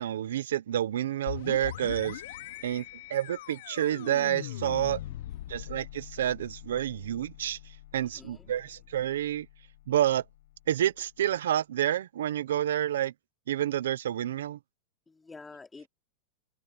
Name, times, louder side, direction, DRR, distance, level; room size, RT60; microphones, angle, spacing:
voice 1, 0.0-2.2 2.6-2.8 3.1-5.0 5.5-7.6 7.9-9.5 9.9-10.2 10.7-13.1 13.5-14.6, right 11 dB, 90° right, 0.7 m, -29 dB
sound 1, 1.3-10.8, left 14 dB, 75° left, 0.9 m, -42 dB
voice 2, 5.0-5.6 8.0-8.5 15.1-15.9, left 3 dB, 10° left, 2.8 m, -50 dB
supercardioid pair, 135°, 0 cm